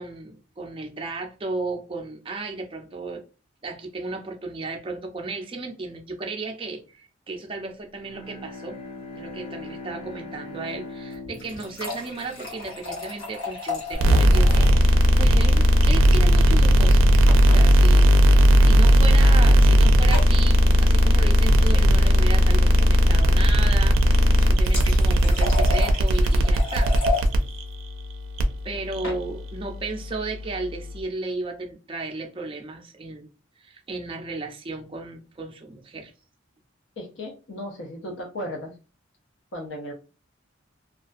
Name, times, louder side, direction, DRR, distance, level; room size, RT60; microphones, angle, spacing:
voice 1, 0.0-3.2 3.6-8.8 9.1-17.1 17.5-26.9 28.6-33.3 33.6-36.1, right 3 dB, 25° right, 0.4 m, -34 dB
Bowed string instrument, 7.9-13.3, left 2 dB, 30° left, 0.8 m, -41 dB
sound 1, 11.1-14.8 15.1-15.2 15.5-15.6 17.3-17.6 18.6-18.8 20.1-20.4 24.2-27.3 28.7-29.2, left 3 dB, 80° left, 1.1 m, -33 dB
sound 2, 13.9-31.0, equal, 85° right, 0.4 m, -17 dB
voice 2, 37.0-38.7 39.5-39.9, left 1 dB, 65° left, 0.5 m, -35 dB
2.4 x 2.2 x 2.4 m
head